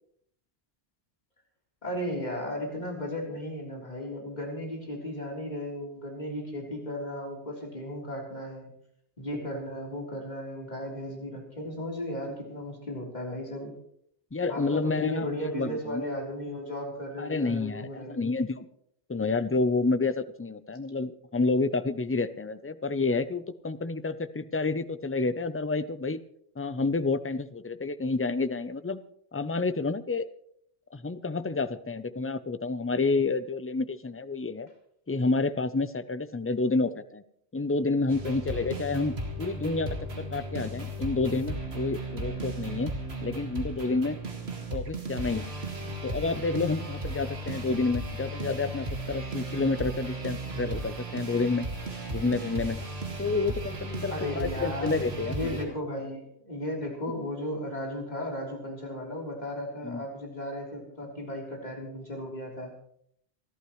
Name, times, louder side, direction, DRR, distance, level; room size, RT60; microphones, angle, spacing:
voice 1, 1.8-8.7 9.2-13.7 14.5-18.3 54.1-62.7, left 1 dB, 40° left, -2 dB, 3.7 m, -35 dB
voice 2, 14.3-15.3 15.5-16.0 17.2-18.7 19.1-26.2 26.6-29.0 29.3-30.3 30.9-34.7 35.1-37.2 37.5-42.9 43.2-44.2 44.7-45.5 46.0-51.7 52.1-52.8 53.2-55.4 59.8-60.0, left 3 dB, 20° left, 12 dB, 0.4 m, -29 dB
sound 1, 38.1-55.6, right 1 dB, 70° right, 2.2 m, -35 dB
27.5 x 11.5 x 3.2 m, 0.67 s
omnidirectional pair, 1.1 m